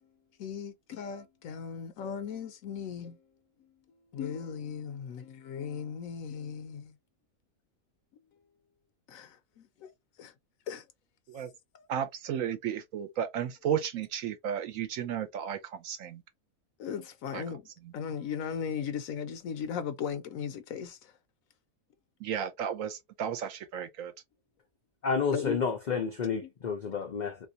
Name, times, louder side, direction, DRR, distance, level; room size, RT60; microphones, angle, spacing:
voice 1, 0.4-3.2 4.1-6.9 9.1-9.9 10.2-10.3 10.7-10.8 11.7-11.9 16.8-17.7 17.9-21.1 25.3-25.6, left 7 dB, 80° left, 1.0 m, -37 dB
voice 2, 11.9-16.2 17.3-17.4 22.2-24.1, right 8 dB, 75° right, 0.9 m, -33 dB
voice 3, 25.0-27.4, left 5 dB, 60° left, 0.4 m, -30 dB
3.3 x 2.7 x 2.6 m
omnidirectional pair, 1.5 m